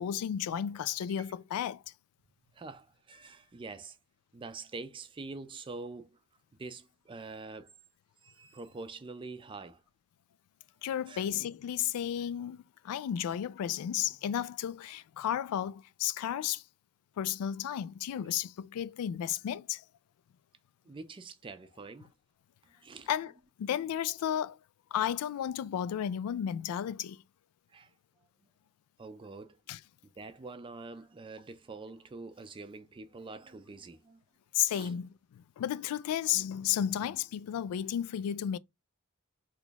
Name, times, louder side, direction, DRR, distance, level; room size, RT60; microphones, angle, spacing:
voice 1, 0.0-1.8 10.8-16.6 17.2-19.8 23.1-23.3 23.6-24.6 24.9-27.2 29.7-29.8 34.5-38.6, left 10 dB, 90° left, 0.3 m, -33 dB
voice 2, 2.5-4.0 4.3-6.2 6.6-7.7 8.2-9.8 11.1-11.3 20.9-22.1 22.6-23.1 27.7-27.9 29.0-29.6 30.2-34.2 34.7-34.9, right 3 dB, 25° right, 0.4 m, -45 dB
3.0 x 2.3 x 3.9 m
head